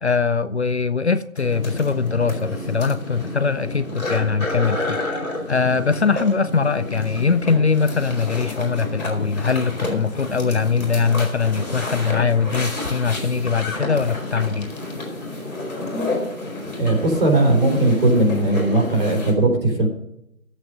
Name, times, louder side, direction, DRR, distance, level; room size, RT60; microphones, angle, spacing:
voice 1, 0.0-5.0 5.5-14.7, left 5 dB, 55° left, 0.6 m, -21 dB
sound 1, 1.3-19.3, left 2 dB, ahead, 0.9 m, -30 dB
voice 2, 16.8-19.9, right 2 dB, 40° right, 3.7 m, -18 dB
12.0 x 8.3 x 5.2 m
figure-of-eight pair, 160°, 41 cm